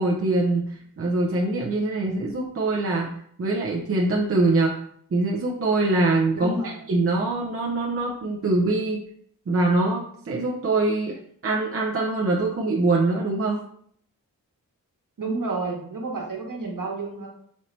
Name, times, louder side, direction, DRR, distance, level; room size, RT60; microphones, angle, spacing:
voice 1, 0.0-3.1 3.4-4.7 5.1-6.6 6.9-9.0 9.5-11.1 11.4-13.6, right 2 dB, 40° right, -2 dB, 0.7 m, -23 dB
voice 2, 6.3-6.8 15.2-17.3, right 3 dB, 55° right, -1 dB, 1.3 m, -30 dB
4.2 x 2.8 x 3.2 m, 0.63 s
cardioid pair, 50°, 37 cm